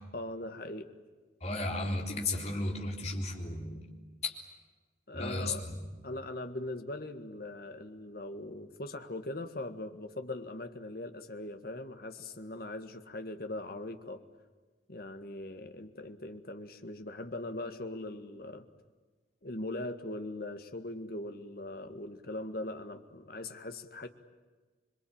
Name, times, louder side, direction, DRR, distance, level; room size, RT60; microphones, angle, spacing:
voice 1, 0.1-0.9 5.1-5.7 6.0-14.2 14.9-18.6 19.4-24.1, left 2 dB, 55° left, 7 dB, 1.8 m, -40 dB
voice 2, 1.4-3.9 4.2-4.3 5.1-5.8, left 2 dB, 35° left, 1 dB, 3.9 m, -34 dB
27.0 x 23.0 x 8.9 m, 1.3 s
head